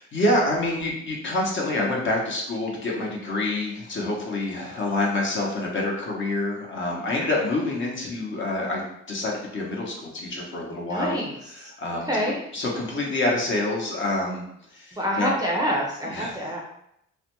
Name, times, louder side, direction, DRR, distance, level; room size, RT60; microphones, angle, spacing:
voice 1, 0.0-11.1 11.8-12.1 12.5-14.4 14.7-15.3 16.0-16.3, left 2 dB, 40° left, -2 dB, 0.8 m, -27 dB
voice 2, 10.9-11.7 12.1-12.4 14.9-16.6, equal, 15° right, -3 dB, 0.5 m, -27 dB
2.4 x 2.1 x 2.9 m, 0.75 s
cardioid pair, 90°, 30 cm